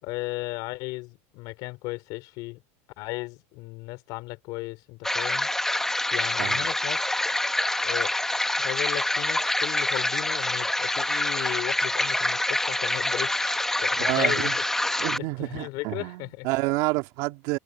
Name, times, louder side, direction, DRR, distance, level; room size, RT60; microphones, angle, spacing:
voice 1, 0.0-2.6 3.0-5.5 6.1-7.0 7.8-8.1 8.6-14.6 15.4-16.5, left 22 dB, 65° left, 4.6 m, -35 dB
sound 1, 5.0-15.2, left 1 dB, 5° left, 1.1 m, -26 dB
voice 2, 14.0-14.5 15.0-17.6, right 22 dB, 65° right, 2.2 m, -29 dB
supercardioid pair, 120°, 7 cm